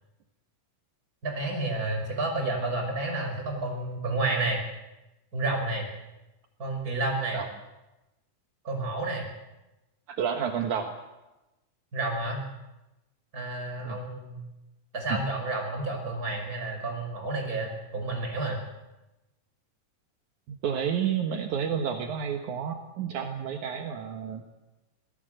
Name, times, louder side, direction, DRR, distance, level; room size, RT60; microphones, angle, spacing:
voice 1, 1.2-4.6 5.3-5.9 6.6-7.4 8.6-9.3 11.9-12.4 13.3-14.5 14.9-18.6, right 2 dB, 25° right, 2 dB, 5.9 m, -30 dB
voice 2, 10.1-10.9 13.8-14.0 15.1-15.2 20.6-24.4, right 8 dB, 75° right, 4 dB, 2.8 m, -30 dB
26.5 x 18.0 x 7.9 m, 1.0 s
omnidirectional pair, 3.5 m